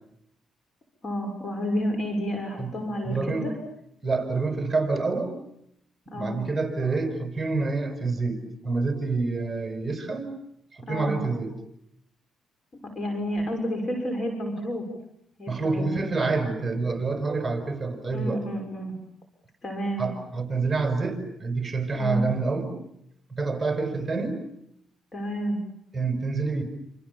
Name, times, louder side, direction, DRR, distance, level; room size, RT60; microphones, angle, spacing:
voice 1, 1.0-3.5 6.1-6.4 10.8-11.2 12.9-14.8 15.4-16.0 18.1-19.0 19.6-20.1 22.0-22.3 25.1-25.6, equal, 45° left, 4 dB, 6.1 m, -30 dB
voice 2, 3.0-3.5 4.0-5.3 6.1-10.3 10.7-11.5 15.5-18.4 20.0-22.8 23.3-24.4 25.9-26.6, right 3 dB, 10° right, 6 dB, 6.5 m, -27 dB
28.0 x 27.0 x 7.3 m, 0.75 s
cardioid pair, 90°, 0 cm